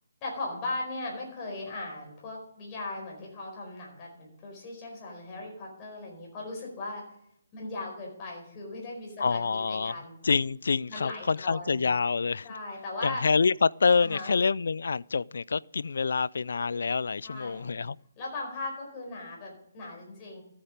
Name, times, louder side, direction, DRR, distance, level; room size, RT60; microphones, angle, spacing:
voice 1, 0.2-7.0 7.5-10.2 10.9-11.8 12.4-13.3 14.0-14.3 17.2-17.8 18.2-20.4, left 2 dB, 20° left, 4.7 m, -38 dB
voice 2, 9.2-9.9 10.2-12.5 13.0-18.0, left 5 dB, 70° left, 0.3 m, -26 dB
13.5 x 8.6 x 5.2 m
hypercardioid pair, 160°, 0 cm